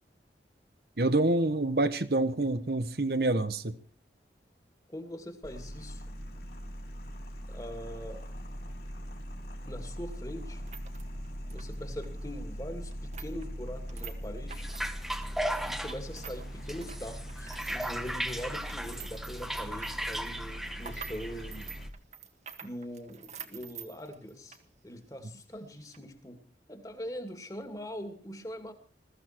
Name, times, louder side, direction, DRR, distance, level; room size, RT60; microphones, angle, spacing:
voice 1, 1.0-3.8, right 2 dB, 60° right, 11 dB, 1.1 m, -27 dB
voice 2, 4.9-6.0 7.5-8.3 9.7-10.6 11.5-14.7 15.6-21.7 22.6-24.6 24.8-26.4 26.7-28.7, equal, 20° left, 7 dB, 2.5 m, -42 dB
sound 1, 5.4-21.9, equal, 60° left, 3.9 m, -41 dB
sound 2, 10.5-16.4 16.7-24.7 25.0-25.1 25.7-26.0, right 7 dB, 40° right, 1.7 m, -48 dB
sound 3, 14.5-21.9, equal, ahead, 1.2 m, -37 dB
21.0 x 14.5 x 4.6 m, 0.38 s
head